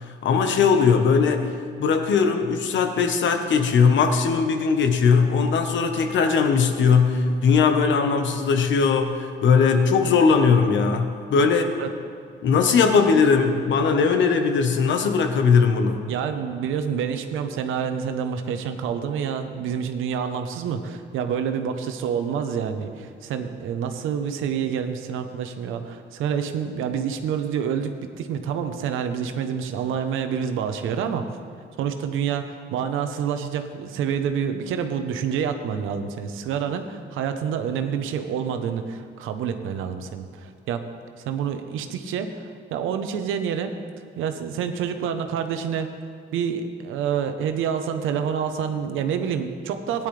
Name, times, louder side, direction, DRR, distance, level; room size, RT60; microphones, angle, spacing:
voice 1, 0.2-1.5 1.8-11.7 12.4-16.1, left 5 dB, 70° left, 6 dB, 1.2 m, -19 dB
voice 2, 16.1-31.3 31.8-40.8 41.2-43.7 44.2-45.9 46.3-50.1, right 7 dB, 90° right, 7 dB, 0.9 m, -27 dB
16.5 x 10.5 x 3.3 m, 2.3 s
cardioid pair, 90°, 20 cm